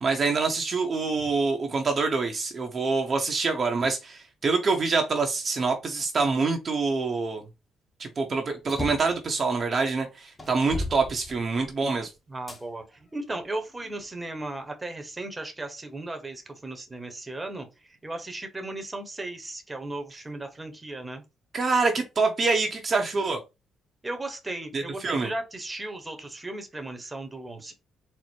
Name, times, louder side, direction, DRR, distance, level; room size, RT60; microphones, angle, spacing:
voice 1, 0.0-7.4 8.0-12.1 21.5-23.4 24.7-25.3, right 4 dB, 40° right, 0.8 m, -26 dB
sound 1, 8.6-9.2 9.8-9.9 10.4-11.8 12.5-12.6 13.3-14.4, left 2 dB, 25° left, 1.1 m, -36 dB
voice 2, 12.3-12.8 13.1-17.7 18.0-21.2 24.0-27.7, right 2 dB, 15° right, 1.0 m, -36 dB
4.3 x 2.1 x 4.4 m
cardioid pair, 90°, 0 cm